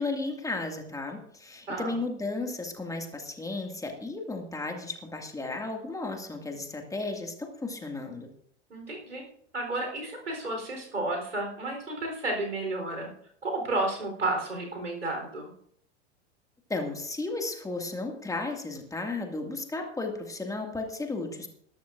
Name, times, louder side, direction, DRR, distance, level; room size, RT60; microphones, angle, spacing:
voice 1, 0.0-8.3 16.7-21.5, left 3 dB, 10° left, 3 dB, 2.1 m, -34 dB
voice 2, 8.7-9.2 9.5-13.1 13.4-15.5, right 2 dB, 80° right, 3 dB, 4.1 m, -32 dB
20.5 x 12.0 x 2.6 m, 0.67 s
figure-of-eight pair, 85°, 35 cm